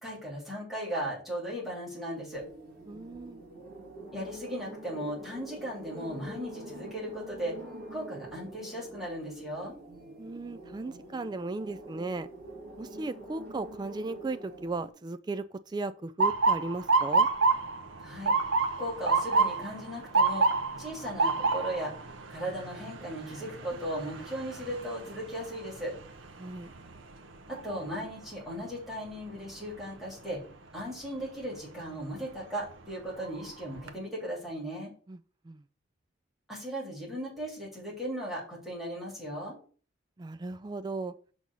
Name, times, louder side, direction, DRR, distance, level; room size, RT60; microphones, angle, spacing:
voice 1, 0.0-2.4 4.1-7.6 7.9-9.7 18.0-18.3 18.8-20.5 20.8-21.9 22.3-25.9 27.5-30.4 30.7-34.9 36.5-39.5, equal, ahead, 2.9 m, -37 dB
sound 1, 2.3-14.9, right 1 dB, 50° right, 2.0 m, -46 dB
voice 2, 2.9-3.4 10.2-12.3 12.8-17.3 26.4-26.7 35.1-35.2 35.4-35.6 40.2-41.1, right 3 dB, 20° right, 0.3 m, -36 dB
Motor vehicle (road) / Siren, 16.2-28.1 28.5-29.0 29.8-30.1 31.9-32.2 32.7-32.8 33.2-33.9, right 3 dB, 80° right, 0.7 m, -29 dB
6.1 x 3.9 x 5.5 m
head